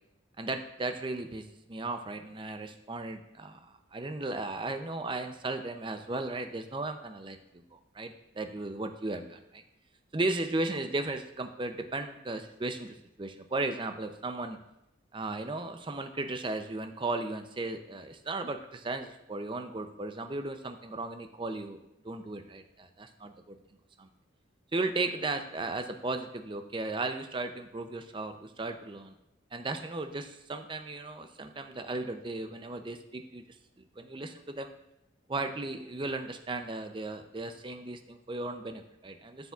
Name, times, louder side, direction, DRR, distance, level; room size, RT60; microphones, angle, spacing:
voice 1, 0.4-9.6 10.1-14.6 15.1-21.8 22.0-23.6 24.0-24.1 24.7-29.1 29.5-33.4 34.0-34.7 35.3-39.5, right 2 dB, 25° right, 7 dB, 0.5 m, -36 dB
13.0 x 6.8 x 2.4 m, 0.86 s
head